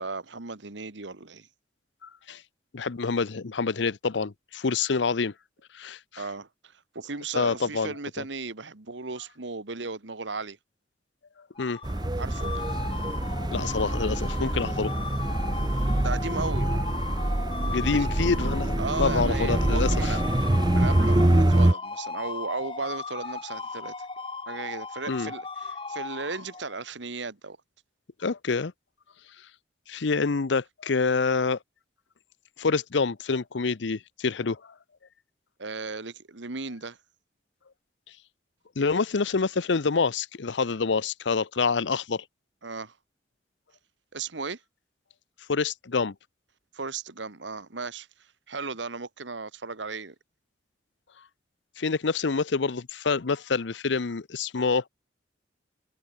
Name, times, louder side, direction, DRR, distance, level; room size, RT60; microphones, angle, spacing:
voice 1, 0.0-1.5 6.2-6.5 6.9-10.6 12.2-12.5 16.0-16.9 17.9-18.1 18.8-20.2 20.7-23.9 24.5-27.6 35.6-37.0 42.6-42.9 44.1-44.6 46.7-48.1 48.5-50.1, right 4 dB, 80° right, 1.5 m, -35 dB
voice 2, 2.0-2.4 2.7-5.3 5.7-6.2 7.3-8.2 11.6-11.8 13.5-14.9 17.7-20.2 25.1-25.3 28.2-28.7 29.9-31.6 32.6-34.7 38.8-42.2 45.5-46.1 51.8-54.8, left 4 dB, 75° left, 0.7 m, -27 dB
sound 1, 11.5-26.8, left 4 dB, 25° left, 1.6 m, -37 dB
sound 2, 11.8-21.7, right 1 dB, 20° right, 0.6 m, -25 dB
head